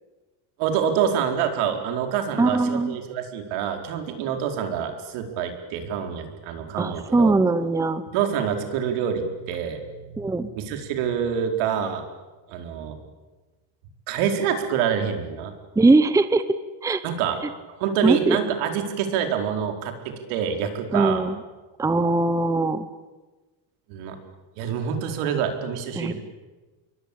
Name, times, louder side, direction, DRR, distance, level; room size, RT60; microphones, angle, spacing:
voice 1, 0.6-7.3 8.1-12.0 12.5-13.0 14.1-15.5 17.0-17.4 17.8-21.2 23.9-24.2 24.6-26.1, right 8 dB, 75° right, 5 dB, 4.8 m, -26 dB
voice 2, 2.4-3.0 6.8-8.0 10.2-10.5 15.8-16.4 16.8-17.0 18.0-18.4 20.9-21.4 21.8-22.9 26.0-26.1, right 3 dB, 5° right, 12 dB, 0.8 m, -20 dB
27.5 x 23.0 x 8.8 m, 1.2 s
cardioid pair, 155°, 49 cm